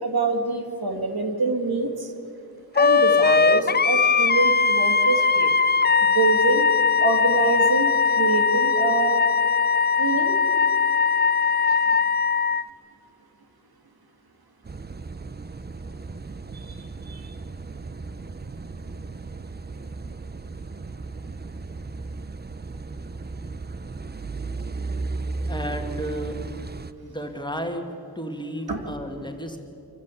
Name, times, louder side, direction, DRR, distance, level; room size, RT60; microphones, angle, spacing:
voice 1, 0.0-2.1 2.7-5.5 6.0-6.7 7.0-9.2 10.0-10.4 16.5-16.8 17.1-17.3 28.7-28.8, right 3 dB, 70° right, 5 dB, 2.3 m, -25 dB
Wind instrument woodwind instrument, 2.8-12.6, left 5 dB, 25° left, 0.4 m, -20 dB
Car passing by / Idling / Accelerating revving vroom, 14.6-26.9, right 3 dB, 25° right, 0.6 m, -35 dB
voice 2, 25.5-26.4 27.0-29.6, equal, 10° left, 4 dB, 2.1 m, -33 dB
25.5 x 15.0 x 8.5 m, 2.7 s
wide cardioid pair, 95°, 38 cm